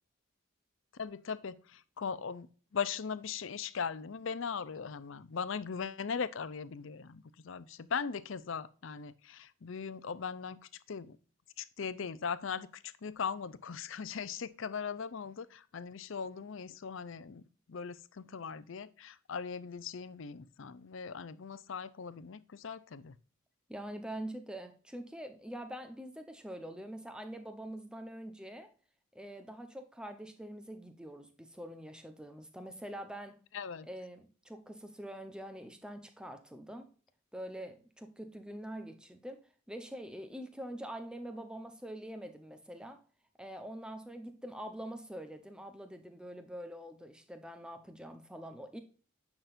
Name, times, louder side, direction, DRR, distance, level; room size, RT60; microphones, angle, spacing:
voice 1, 1.0-2.5 2.7-10.6 10.9-11.2 11.6-17.4 17.7-23.2 33.5-33.9, left 6 dB, 70° left, 0.5 m, -39 dB
voice 2, 23.7-28.7 29.1-33.4 33.8-36.9 37.3-43.0 43.4-48.8, right 1 dB, 5° right, 0.8 m, -45 dB
9.0 x 5.8 x 2.5 m
head